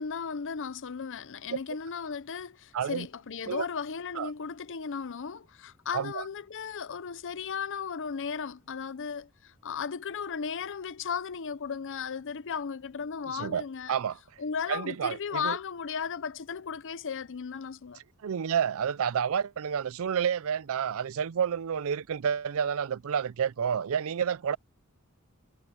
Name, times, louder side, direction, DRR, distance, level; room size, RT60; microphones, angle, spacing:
voice 1, 0.0-14.0 14.4-18.0, left 6 dB, 60° left, 0.7 m, -35 dB
voice 2, 2.7-3.1 3.4-3.7 4.2-4.3 5.9-6.2 13.3-14.2 14.7-15.6 18.2-24.6, right 7 dB, 65° right, 0.4 m, -30 dB
head